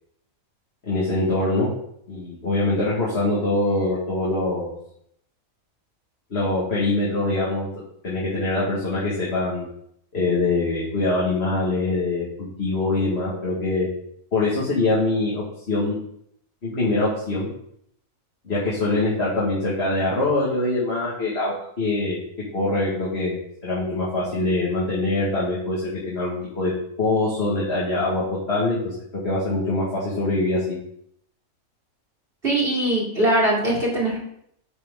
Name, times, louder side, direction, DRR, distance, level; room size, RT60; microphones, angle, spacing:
voice 1, 0.8-1.7 2.1-4.7 6.3-7.7 8.0-9.6 10.1-13.9 14.3-16.0 16.6-17.5 18.4-22.2 22.5-26.7 27.0-29.0 29.2-30.8, left 2 dB, 45° left, -7 dB, 2.3 m, -23 dB
voice 2, 32.4-34.2, right 1 dB, 40° right, -4 dB, 2.3 m, -21 dB
9.5 x 6.1 x 3.8 m, 0.71 s
omnidirectional pair, 1.5 m